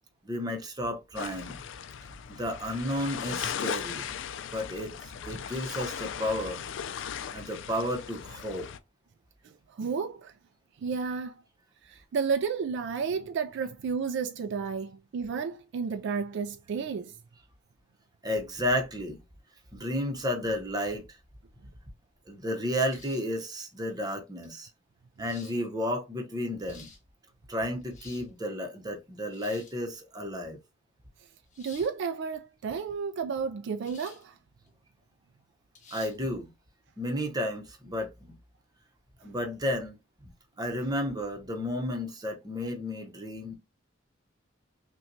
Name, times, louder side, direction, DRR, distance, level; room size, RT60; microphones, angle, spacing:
voice 1, 0.2-1.6 2.3-4.1 4.5-6.6 7.3-8.7 18.2-19.2 19.7-21.0 22.3-24.7 25.2-26.9 27.5-30.6 35.9-36.5 37.0-38.4 39.2-40.0 40.6-43.6, equal, 20° right, 0.8 m, -32 dB
sound 1, 1.1-8.8, left 8 dB, 65° left, 0.4 m, -38 dB
voice 2, 9.4-10.3 10.8-11.4 11.8-17.2 31.6-34.4, right 5 dB, 60° right, 0.3 m, -32 dB
sound 2, 22.9-23.4 24.4-24.5 25.2-25.6 26.4-27.0 27.7-28.3 29.3-29.8 31.5-31.9 33.8-34.3 34.7-34.8 35.7-36.2, left 4 dB, 40° left, 1.2 m, -51 dB
5.6 x 2.2 x 2.7 m
head